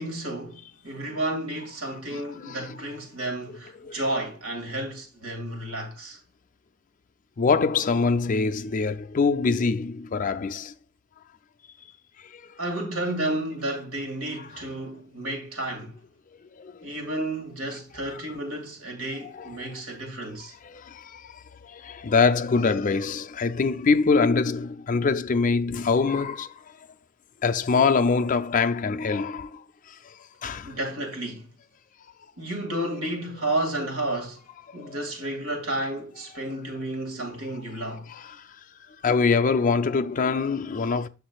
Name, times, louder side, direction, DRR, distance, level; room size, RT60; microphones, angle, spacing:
voice 1, 0.0-6.2 12.6-16.0 16.8-20.5 30.6-31.5 32.4-34.4 34.7-38.1, right 1 dB, 75° right, 2.1 m, -31 dB
voice 2, 2.1-2.7 3.8-4.0 7.4-10.7 12.2-12.5 16.6-16.9 18.1-18.2 19.2-19.7 20.6-26.5 27.4-30.7 34.7-35.0 38.1-38.5 39.0-41.1, left 4 dB, 35° left, 0.4 m, -24 dB
8.1 x 6.3 x 2.3 m
head